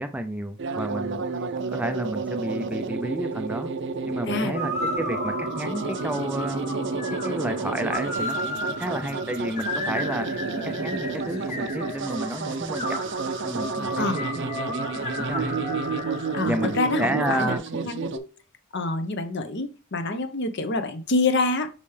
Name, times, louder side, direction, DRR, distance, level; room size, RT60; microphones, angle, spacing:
voice 1, 0.0-3.7 4.1-4.7 5.0-13.0 13.4-15.6 16.4-17.6, right 1 dB, 5° right, 0.4 m, -31 dB
sound 1, 0.6-18.2, right 4 dB, 55° right, 0.6 m, -31 dB
sound 2, 4.2-17.6, left 1 dB, 35° left, 1.3 m, -34 dB
voice 2, 16.3-17.5 17.8-18.3 18.7-21.7, left 3 dB, 55° left, 0.9 m, -26 dB
5.5 x 5.2 x 3.3 m
head